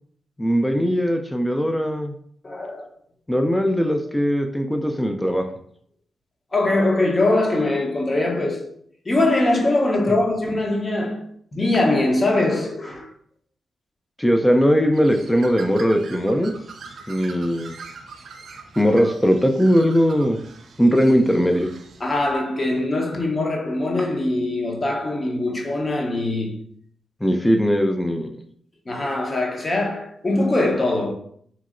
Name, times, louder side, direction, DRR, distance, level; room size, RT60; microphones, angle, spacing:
voice 1, 0.4-2.1 3.3-5.5 10.1-10.2 14.2-16.5 17.1-17.7 18.8-20.4 20.8-21.7 27.2-28.3, equal, 10° left, 0.4 m, -19 dB
voice 2, 2.4-2.9 6.5-8.7 9.0-11.2 11.5-13.1 22.0-26.6 28.9-31.1, left 2 dB, 35° left, 0.8 m, -22 dB
Bird, 14.9-22.4, right 4 dB, 65° right, 0.4 m, -42 dB
3.0 x 2.7 x 2.5 m
supercardioid pair, 45°, 0 cm